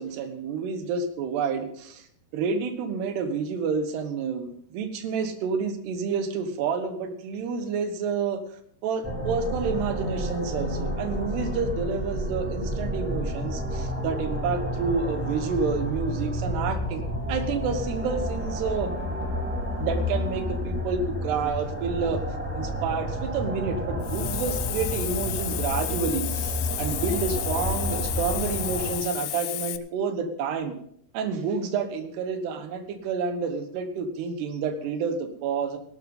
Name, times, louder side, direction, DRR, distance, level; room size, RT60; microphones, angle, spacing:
voice 1, 0.0-2.1 2.3-8.4 8.8-17.0 17.3-18.9 19.8-22.2 22.6-30.7 31.1-35.8, right 5 dB, 90° right, 7 dB, 3.4 m, -29 dB
sound 1, 9.0-29.0, equal, 10° right, 0.7 m, -30 dB
Hiss, 24.0-29.8, left 16 dB, 80° left, 2.0 m, -33 dB
17.0 x 12.0 x 3.8 m, 0.65 s
omnidirectional pair, 4.6 m